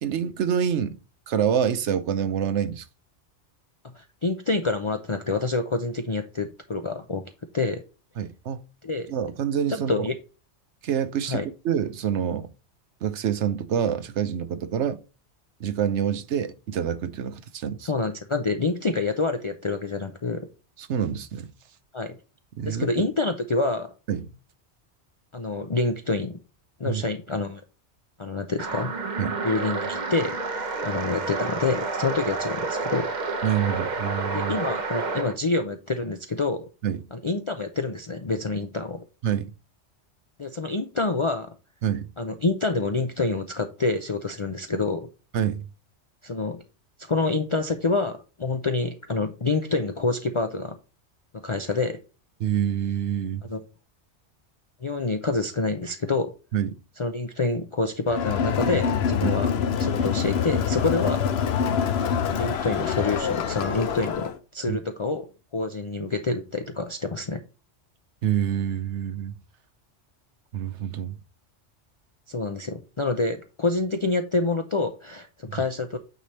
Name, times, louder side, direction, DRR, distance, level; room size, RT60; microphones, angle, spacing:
voice 1, 0.0-1.0 1.3-2.9 8.2-8.6 9.1-10.1 10.8-12.5 13.0-15.0 15.6-17.9 20.8-21.5 22.6-23.1 24.1-24.2 26.9-27.0 29.2-29.4 33.4-34.6 36.8-37.0 39.2-39.5 41.8-42.1 45.3-45.7 52.4-53.4 56.5-56.7 59.2-59.3 64.7-64.8 68.2-69.3 70.5-71.2 75.5-75.6, right 9 dB, 80° right, 1.0 m, -27 dB
voice 2, 3.9-7.2 7.5-7.8 8.8-9.1 9.7-10.2 11.3-11.4 17.8-20.4 21.9-22.2 22.7-23.9 25.3-26.4 26.8-27.6 28.2-28.9 29.4-33.1 34.3-36.7 37.1-39.0 40.4-41.5 42.2-45.1 46.2-46.6 47.1-50.8 51.4-52.0 53.5-53.6 54.8-56.3 57.0-59.5 59.8-61.2 62.3-65.2 65.5-67.4 72.3-76.0, left 3 dB, 35° left, 0.5 m, -27 dB
sound 1, 28.6-35.3, right 3 dB, 45° right, 1.0 m, -29 dB
Crowd, 58.1-64.4, left 7 dB, 65° left, 1.0 m, -25 dB
9.0 x 3.4 x 4.1 m
omnidirectional pair, 1.2 m